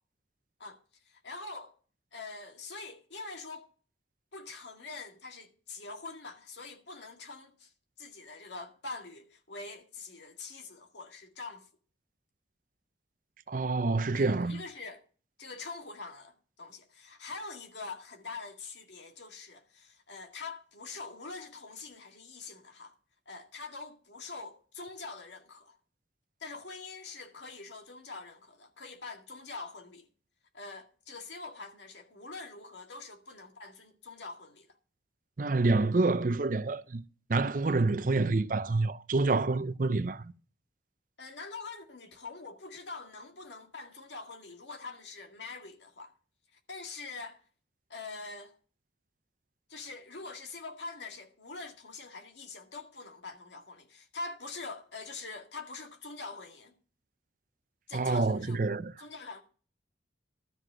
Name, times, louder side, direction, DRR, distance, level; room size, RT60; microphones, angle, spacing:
voice 1, 1.1-1.7 2.1-3.7 4.3-7.7 8.0-11.7 14.1-15.0 15.4-22.9 23.3-25.8 26.4-30.1 30.5-34.7 41.2-46.1 46.7-47.4 47.9-48.5 49.7-56.7 57.9-58.6 59.0-59.4, left 3 dB, 75° left, 2.0 m, -44 dB
voice 2, 13.5-14.6 35.4-37.0 37.3-40.3 57.9-58.9, right 3 dB, 45° right, 0.5 m, -27 dB
12.5 x 5.0 x 7.5 m
head